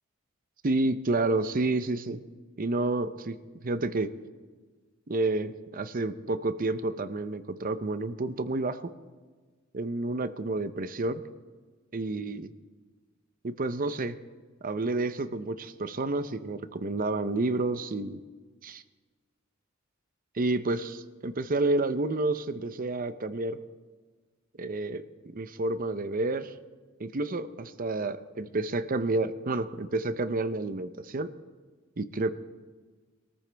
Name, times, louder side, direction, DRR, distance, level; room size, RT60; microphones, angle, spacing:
voice 1, 0.6-2.2 2.6-3.3 3.6-4.1 5.1-8.8 9.7-11.2 11.9-12.5 13.4-14.1 14.6-18.2 18.6-18.8 20.3-23.6 24.6-26.5 27.0-31.3 32.0-32.3, right 2 dB, 45° right, 11 dB, 0.7 m, -30 dB
22.5 x 14.0 x 3.4 m, 1.4 s
head